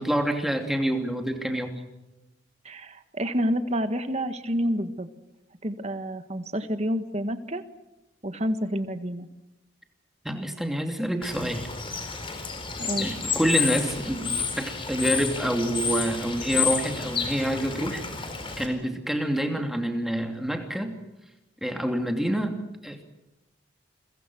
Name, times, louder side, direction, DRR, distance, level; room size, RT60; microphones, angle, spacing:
voice 1, 0.0-1.9 10.2-11.7 13.0-20.9 21.6-23.0, right 1 dB, ahead, 3 dB, 2.8 m, -27 dB
voice 2, 2.6-5.1 5.6-7.6 8.2-9.3 12.8-13.1, equal, 35° right, 9 dB, 1.7 m, -28 dB
Bird / Water, 11.2-18.7, left 6 dB, 30° left, 4.0 m, -30 dB
29.5 x 23.0 x 6.3 m, 0.98 s
head